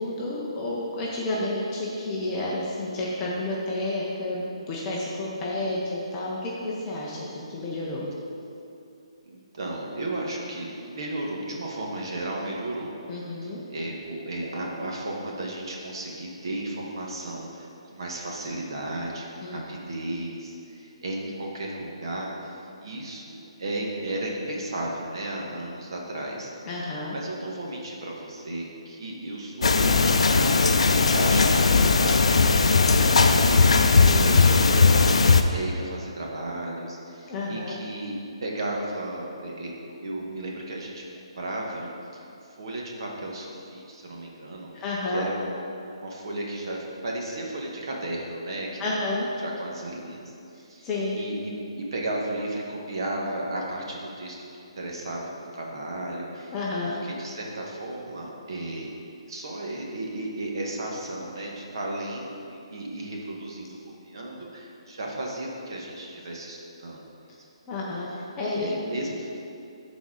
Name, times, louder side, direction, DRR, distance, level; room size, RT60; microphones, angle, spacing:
voice 1, 0.0-8.1 13.1-13.6 19.4-19.6 26.6-27.2 34.0-34.4 37.3-37.8 44.8-45.3 48.8-49.3 50.8-51.2 56.5-57.0 67.7-68.7, left 2 dB, 10° left, -6 dB, 0.6 m, -30 dB
voice 2, 9.3-12.9 13.4-22.5 22.8-26.5 27.1-39.8 40.0-42.2 42.6-44.7 45.1-45.5 45.7-48.9 49.4-50.9 51.1-56.5 56.8-58.9 59.3-63.8 64.0-67.0 68.6-69.3, right 1 dB, 45° right, -2 dB, 1.2 m, -34 dB
sound 1, 29.6-35.4, left 4 dB, 75° left, 0.4 m, -18 dB
12.0 x 4.1 x 3.8 m, 2.7 s
hypercardioid pair, 175°, 3 cm